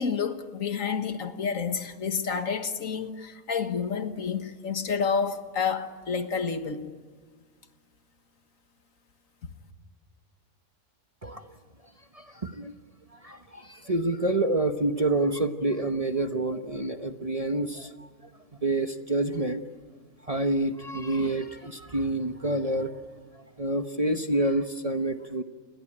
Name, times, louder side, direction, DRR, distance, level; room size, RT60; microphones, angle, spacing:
voice 1, 0.0-6.9, left 6 dB, 65° left, 1.8 m, -29 dB
voice 2, 12.1-12.7 13.1-18.1 18.6-19.6 20.3-23.0 23.3-25.4, right 2 dB, 30° right, 1.0 m, -28 dB
29.0 x 21.5 x 8.7 m
omnidirectional pair, 1.5 m